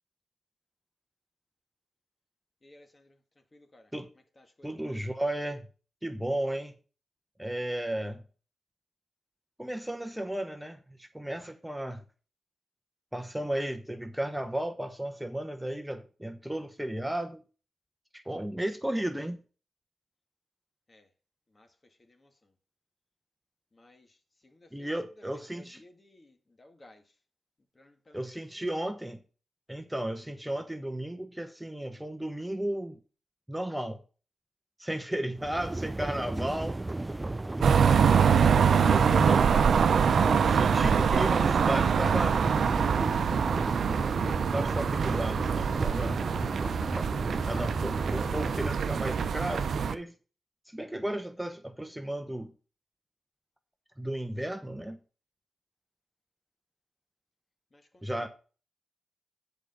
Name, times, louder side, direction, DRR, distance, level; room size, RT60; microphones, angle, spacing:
voice 1, 2.6-3.2 3.5-3.9 4.4-5.0 20.9-21.1 21.5-21.7 22.1-22.3 23.7-24.1 24.4-24.9 25.5-27.0 27.8-28.2 28.5-28.7 57.7-58.1, left 1 dB, 35° left, 1.8 m, -58 dB
voice 2, 4.6-5.7 6.0-6.7 7.4-8.2 9.6-12.0 13.1-17.4 18.1-19.4 24.7-25.8 28.1-29.2 29.7-33.0 33.5-34.0 34.8-36.8 38.1-38.5 38.9-39.7 40.2-42.4 44.5-46.2 47.5-50.1 50.7-52.5 54.0-55.0 58.0-58.3, right 1 dB, 5° right, 0.9 m, -34 dB
sound 1, 35.3-48.8, right 2 dB, 25° right, 0.3 m, -34 dB
sound 2, 37.6-49.9, right 7 dB, 75° right, 0.6 m, -24 dB
7.6 x 5.0 x 6.7 m
cardioid pair, 55°, 0 cm